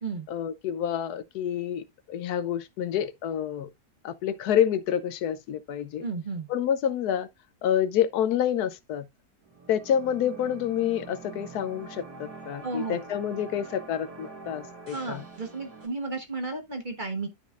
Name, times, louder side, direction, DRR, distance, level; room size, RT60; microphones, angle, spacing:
voice 1, 0.3-3.7 4.0-6.0 6.5-7.3 7.6-9.1 9.7-15.2, left 9 dB, 75° left, 1.1 m, -28 dB
voice 2, 6.0-6.5 12.6-13.0 14.9-17.3, right 3 dB, 30° right, 1.3 m, -33 dB
sound 1, 9.4-15.9, right 4 dB, 70° right, 2.6 m, -45 dB
12.0 x 5.1 x 2.4 m
omnidirectional pair, 1.7 m